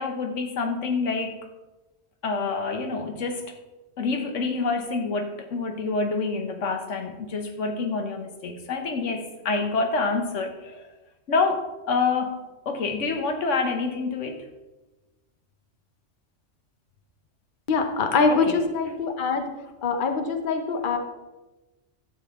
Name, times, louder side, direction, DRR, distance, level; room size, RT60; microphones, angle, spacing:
voice 1, 0.0-1.5 2.2-3.5 4.0-10.9 11.3-12.4 12.7-14.4 18.3-18.6, left 4 dB, 85° left, 5 dB, 1.4 m, -27 dB
voice 2, 17.7-19.5 19.8-21.0, left 4 dB, 45° left, 6 dB, 1.0 m, -23 dB
11.5 x 7.5 x 3.6 m, 1.1 s
omnidirectional pair, 1.2 m